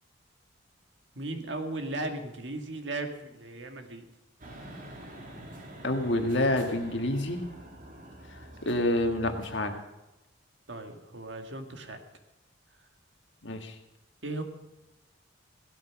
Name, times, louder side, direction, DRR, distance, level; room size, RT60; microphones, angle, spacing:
voice 1, 1.2-4.0 10.7-12.0 14.2-14.4, right 2 dB, 65° right, 5 dB, 1.9 m, -36 dB
sound 1, 4.4-9.5, right 1 dB, 45° right, 2.9 m, -46 dB
voice 2, 5.8-7.4 8.6-9.8 13.4-13.8, left 1 dB, 65° left, 5 dB, 1.8 m, -28 dB
16.0 x 12.5 x 5.9 m, 0.99 s
head